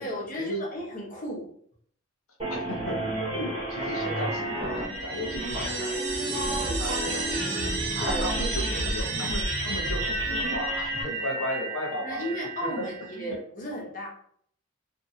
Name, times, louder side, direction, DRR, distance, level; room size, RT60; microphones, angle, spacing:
voice 1, 0.0-1.5 8.0-8.2 12.0-14.1, equal, 40° left, -3 dB, 0.9 m, -34 dB
sound 1, 2.4-11.0, right 1 dB, 25° right, 0.9 m, -32 dB
voice 2, 2.5-3.0 3.3-12.3 12.6-12.9 13.1-13.4, equal, 80° left, 0 dB, 0.8 m, -35 dB
sound 2, 3.9-13.2, right 2 dB, 70° right, 0.8 m, -32 dB
2.7 x 2.6 x 2.4 m, 0.62 s
head